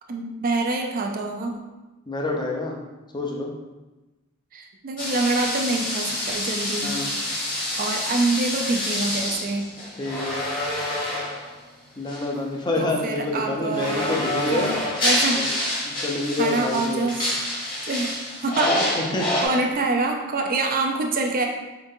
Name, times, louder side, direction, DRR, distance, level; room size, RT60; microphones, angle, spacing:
voice 1, 0.1-1.5 4.5-6.9 7.8-9.7 12.8-14.2 14.5-15.5 16.4-17.3 17.9-18.7 19.4-21.5, right 3 dB, 40° right, 2 dB, 0.4 m, -26 dB
voice 2, 2.1-2.8 3.1-3.5 6.8-7.1 10.0-10.4 12.0-14.8 15.3-15.5 15.9-17.1 18.6-19.6, left 2 dB, 20° left, 0 dB, 0.6 m, -27 dB
sound 1, 5.0-11.5 12.1-12.3 13.7-19.5, left 1 dB, 40° left, 1.2 m, -27 dB
4.5 x 3.8 x 2.7 m, 1.1 s
head